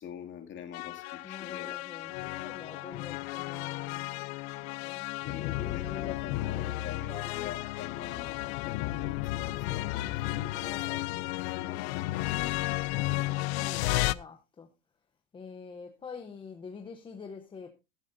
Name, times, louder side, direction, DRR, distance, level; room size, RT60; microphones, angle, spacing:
voice 1, 0.0-1.9 5.2-11.3 11.6-12.5, left 8 dB, 30° left, 4 dB, 2.2 m, -44 dB
sound 1, 0.7-14.1, left 19 dB, 55° left, 0.5 m, -33 dB
voice 2, 1.2-4.1 4.6-7.3 10.6-11.0 13.3-14.7 15.3-17.7, left 5 dB, 15° left, 4 dB, 0.8 m, -46 dB
14.5 x 12.5 x 2.6 m, 0.27 s
supercardioid pair, 160°, 39 cm